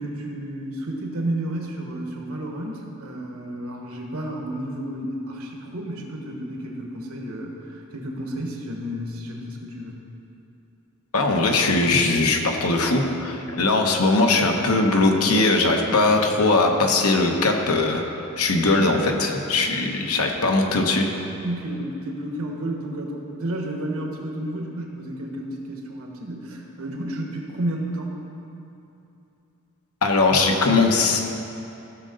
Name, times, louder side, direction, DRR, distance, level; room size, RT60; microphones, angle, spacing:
voice 1, 0.0-10.0 21.4-28.2, right 1 dB, 70° right, 1 dB, 1.5 m, -31 dB
voice 2, 11.1-18.0 18.4-21.1 30.0-31.2, left 3 dB, 70° left, 2 dB, 1.0 m, -20 dB
15.5 x 6.5 x 3.9 m, 2.8 s
head